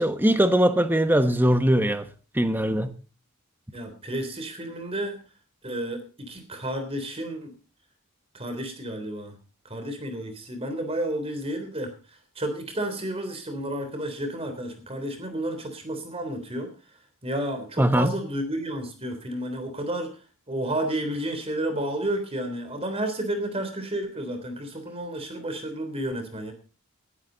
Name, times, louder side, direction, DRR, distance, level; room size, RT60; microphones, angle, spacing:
voice 1, 0.0-2.1 2.3-2.9 17.8-18.1, equal, 10° right, 1.1 m, -21 dB
voice 2, 3.7-5.2 5.6-7.5 8.3-9.3 9.7-11.9 12.3-16.7 17.2-20.1 20.5-26.5, right 1 dB, 25° right, 3.4 m, -31 dB
19.5 x 12.0 x 4.0 m
head